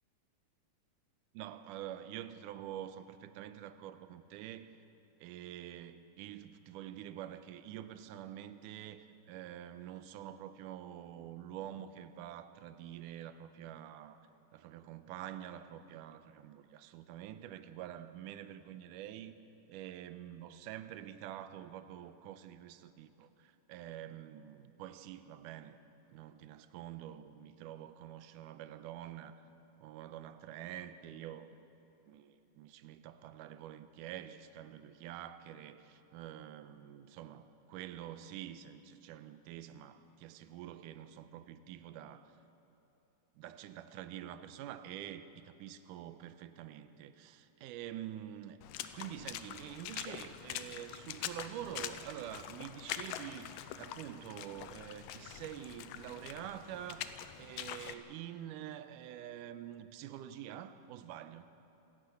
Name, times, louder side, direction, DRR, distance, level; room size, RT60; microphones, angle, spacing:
voice 1, 1.3-4.8 5.2-14.2 14.5-19.3 19.7-25.8 26.1-29.4 29.8-31.5 32.1-42.4 43.4-48.6 48.9-57.0 57.4-61.5, right 11 dB, 80° right, 11 dB, 2.2 m, -47 dB
Water / Splash splatter, 48.6-57.9, left 11 dB, 80° left, 2.3 m, -44 dB
27.0 x 12.5 x 8.2 m, 3.0 s
omnidirectional pair, 3.9 m